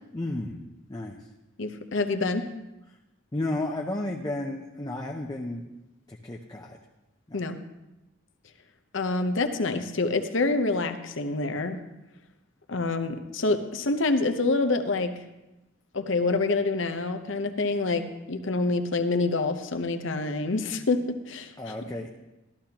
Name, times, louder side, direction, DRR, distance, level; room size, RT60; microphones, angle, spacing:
voice 1, 0.1-0.6 0.9-1.2 3.3-5.6 6.1-6.8 7.3-7.4 21.6-22.1, left 2 dB, 20° left, 0 dB, 0.6 m, -32 dB
voice 2, 1.6-2.5 7.3-7.6 8.9-11.8 12.7-15.1 15.9-21.8, left 3 dB, 70° left, 7 dB, 0.8 m, -27 dB
13.5 x 13.5 x 2.9 m, 0.98 s
head